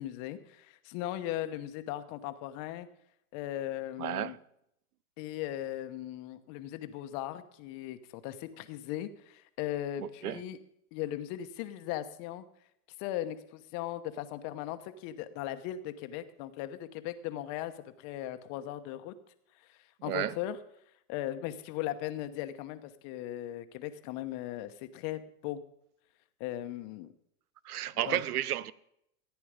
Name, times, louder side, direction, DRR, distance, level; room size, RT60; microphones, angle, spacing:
voice 1, 0.0-2.9 3.3-4.4 5.2-10.6 10.9-12.4 13.0-19.1 19.6-20.6 21.1-25.6 26.4-27.1 27.9-28.2, left 12 dB, 40° left, 1.1 m, -38 dB
voice 2, 4.0-4.4 10.0-10.4 20.0-20.4 27.6-28.7, right 12 dB, 85° right, 0.8 m, -32 dB
15.0 x 9.3 x 5.1 m
hypercardioid pair, 130°, 44 cm